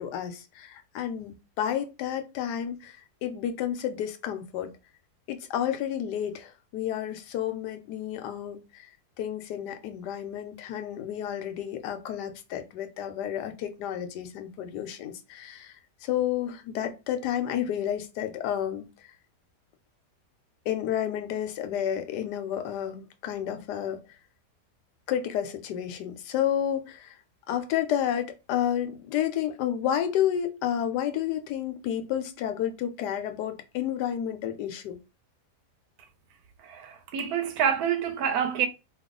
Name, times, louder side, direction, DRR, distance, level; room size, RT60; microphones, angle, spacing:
voice 1, 0.0-4.7 5.3-8.9 9.2-19.1 20.7-24.0 25.1-27.2 27.5-35.0, left 10 dB, 85° left, 1.2 m, -31 dB
voice 2, 36.6-38.7, right 8 dB, 75° right, 1.0 m, -27 dB
3.0 x 2.2 x 3.6 m
omnidirectional pair, 1.7 m